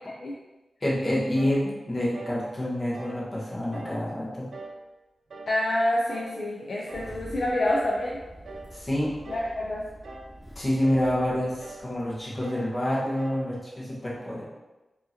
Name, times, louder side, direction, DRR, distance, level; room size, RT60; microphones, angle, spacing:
voice 1, 0.8-4.5 8.7-9.1 10.5-14.4, left 1 dB, 30° left, -6 dB, 1.2 m, -27 dB
sound 1, 1.4-1.6 2.1-2.4 2.9-3.2 3.7-4.0 4.5-4.8 5.3-5.6 6.1-6.4 6.9-7.2 7.7-8.0 8.4-8.7 9.2-9.6 10.0-10.4 10.8-11.1 11.6-11.9 12.4-12.7 13.2-13.5, right 2 dB, 75° right, 0.5 m, -43 dB
voice 2, 5.5-8.2 9.3-9.8, left 1 dB, 55° left, -3 dB, 0.5 m, -27 dB
Engine starting, 6.9-12.4, equal, ahead, 1.1 m, -47 dB
4.6 x 2.8 x 2.8 m, 1.1 s
wide cardioid pair, 135°, 0 cm